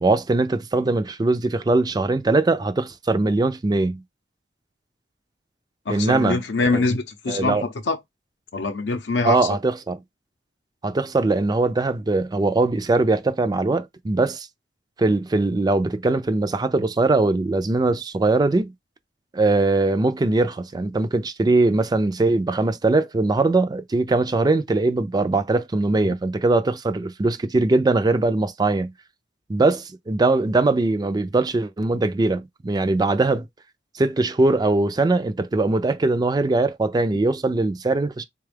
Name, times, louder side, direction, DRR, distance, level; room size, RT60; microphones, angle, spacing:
voice 1, 0.0-4.0 5.9-6.4 6.7-6.8 7.3-7.6 9.2-10.0 10.8-14.5 15.0-18.7 19.3-28.9 29.5-33.5 33.9-38.2, right 2 dB, 20° right, 0.4 m, -21 dB
voice 2, 5.9-8.0 8.5-9.5 26.1-26.2, left 3 dB, 75° left, 0.6 m, -24 dB
3.9 x 2.3 x 3.3 m
head